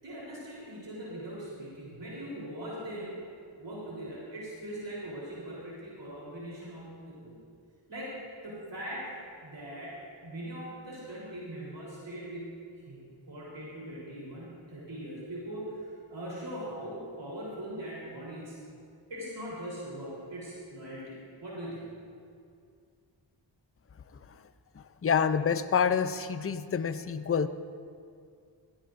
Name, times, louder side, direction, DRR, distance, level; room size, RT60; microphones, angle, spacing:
voice 1, 0.0-3.2 3.6-7.4 7.9-8.2 8.4-12.6 12.9-18.6 19.1-21.9, right 1 dB, 65° right, -7 dB, 3.9 m, -41 dB
voice 2, 24.7-27.5, left 7 dB, 30° left, 11 dB, 0.6 m, -28 dB
17.0 x 15.5 x 2.6 m, 2.3 s
cardioid pair, 55°, 46 cm